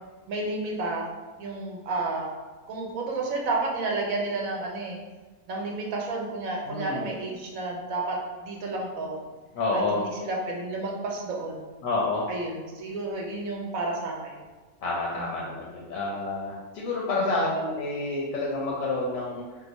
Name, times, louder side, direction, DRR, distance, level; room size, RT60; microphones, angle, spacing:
voice 1, 0.3-1.1 1.4-2.3 2.7-5.0 5.5-9.2 9.7-11.7 12.3-14.4 15.2-15.5 17.2-17.5, right 2 dB, 85° right, -1 dB, 1.1 m, -31 dB
voice 2, 6.7-7.1 9.5-10.0 11.8-12.3 14.8-19.4, left 2 dB, 80° left, -4 dB, 1.0 m, -28 dB
2.8 x 2.1 x 4.0 m, 1.3 s
omnidirectional pair, 1.4 m